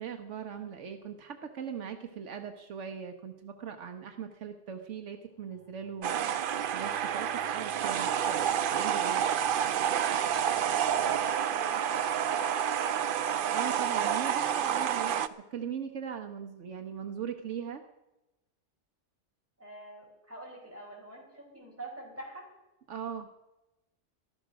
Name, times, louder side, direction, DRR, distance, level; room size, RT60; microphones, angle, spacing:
voice 1, 0.0-6.3 6.7-9.2 13.5-15.2 15.5-17.8 22.9-23.3, right 7 dB, 80° right, 6 dB, 1.3 m, -39 dB
sound 1, 5.3-12.3, left 3 dB, 10° left, 4.9 m, -60 dB
sound 2, 6.0-15.3, right 9 dB, 55° right, 0.7 m, -29 dB
voice 2, 10.6-12.9 19.6-22.4, right 1 dB, 10° right, -3 dB, 5.1 m, -46 dB
14.5 x 12.5 x 6.1 m, 0.99 s
omnidirectional pair, 1.2 m